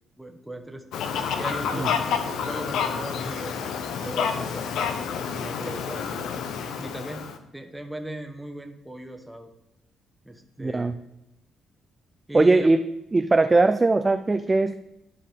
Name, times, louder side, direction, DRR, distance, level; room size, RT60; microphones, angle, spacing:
voice 1, 0.2-5.1 5.3-6.3 6.8-7.2 7.5-9.5 10.2-11.0 12.3-12.7, right 1 dB, 5° right, 4 dB, 1.1 m, -38 dB
Fowl, 0.9-7.4, left 7 dB, 80° left, 0.7 m, -29 dB
voice 2, 10.6-10.9 12.3-12.8 13.1-14.7, right 3 dB, 20° right, 9 dB, 0.3 m, -20 dB
12.0 x 4.9 x 3.6 m, 0.90 s
cardioid pair, 90°, 0 cm